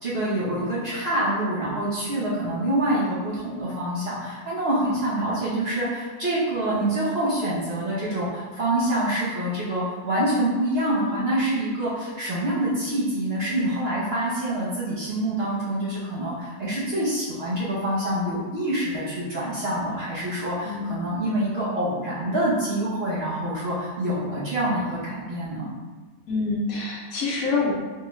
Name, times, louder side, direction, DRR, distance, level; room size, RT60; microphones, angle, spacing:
voice 1, 0.0-25.7, right 1 dB, 50° right, -8 dB, 0.9 m, -26 dB
voice 2, 26.3-27.7, left 3 dB, 65° left, -3 dB, 1.0 m, -26 dB
4.5 x 2.3 x 3.1 m, 1.3 s
omnidirectional pair, 1.7 m